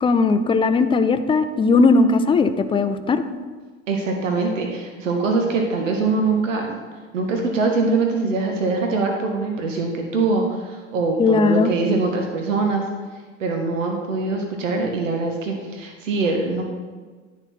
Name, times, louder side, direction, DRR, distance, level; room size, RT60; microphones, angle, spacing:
voice 1, 0.0-3.2 11.2-11.7, left 4 dB, 15° left, 10 dB, 0.4 m, -18 dB
voice 2, 3.9-6.8 7.1-12.8 13.4-16.6, right 3 dB, 90° right, 2 dB, 1.0 m, -23 dB
9.7 x 4.1 x 4.2 m, 1.4 s
hypercardioid pair, 90°, 37 cm